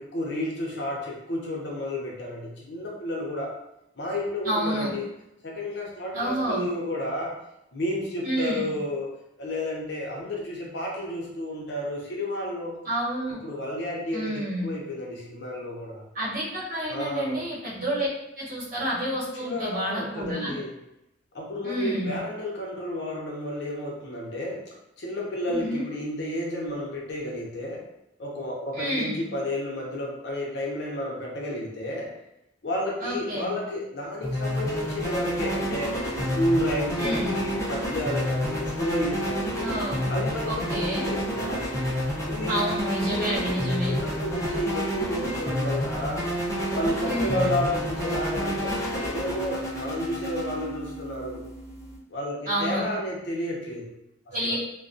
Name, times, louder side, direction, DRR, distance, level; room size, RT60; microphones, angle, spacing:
voice 1, 0.0-3.5 4.0-5.1 5.4-7.3 7.7-12.8 13.4-16.0 16.9-17.4 19.4-20.7 21.3-27.8 28.2-32.1 32.6-36.0 36.3-39.7 40.1-41.6 42.2-42.6 43.0-46.2 46.7-51.4 52.1-53.9 54.3-54.5, left 1 dB, 65° left, -2 dB, 0.6 m, -31 dB
voice 2, 4.4-4.9 6.1-6.7 8.2-8.7 12.8-13.4 14.1-14.7 16.1-18.1 18.4-20.5 21.6-22.2 25.5-25.8 28.7-29.2 33.0-33.5 37.0-37.3 39.6-40.1 40.4-41.1 42.5-43.9 47.0-47.6 52.5-52.8 54.3-54.6, right 1 dB, 45° right, -8 dB, 1.0 m, -29 dB
sound 1, 34.2-52.0, equal, 15° left, 0.5 m, -29 dB
2.2 x 2.2 x 2.5 m, 0.86 s
head